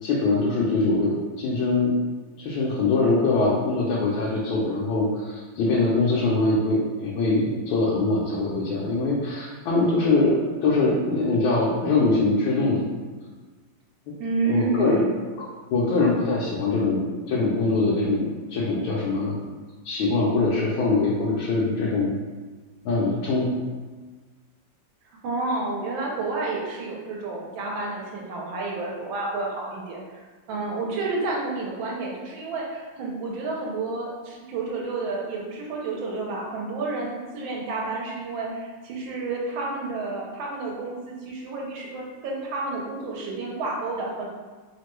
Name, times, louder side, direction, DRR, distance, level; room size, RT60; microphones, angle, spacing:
voice 1, 0.0-1.9 2.4-12.9 14.4-15.0 15.4-19.4 19.8-22.2 22.8-23.6, left 3 dB, 85° left, -5 dB, 1.4 m, -23 dB
voice 2, 14.2-15.1 25.2-30.0 30.5-44.3, right 3 dB, 85° right, -2 dB, 1.4 m, -30 dB
3.4 x 2.1 x 3.0 m, 1.4 s
omnidirectional pair, 2.1 m